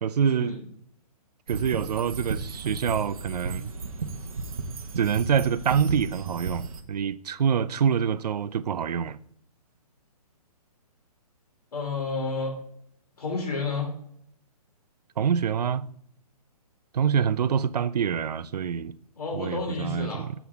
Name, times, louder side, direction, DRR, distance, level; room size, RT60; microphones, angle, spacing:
voice 1, 0.0-0.6 1.5-3.7 5.0-9.2 15.2-15.9 16.9-18.9 19.3-20.3, right 7 dB, 90° right, 0.5 m, -26 dB
sound 1, 1.5-6.8, right 4 dB, 60° right, 1.0 m, -34 dB
voice 2, 11.7-12.5 13.2-13.9 19.2-20.3, left 4 dB, 80° left, 2.5 m, -30 dB
8.0 x 7.2 x 3.5 m
hypercardioid pair, 180°, 20 cm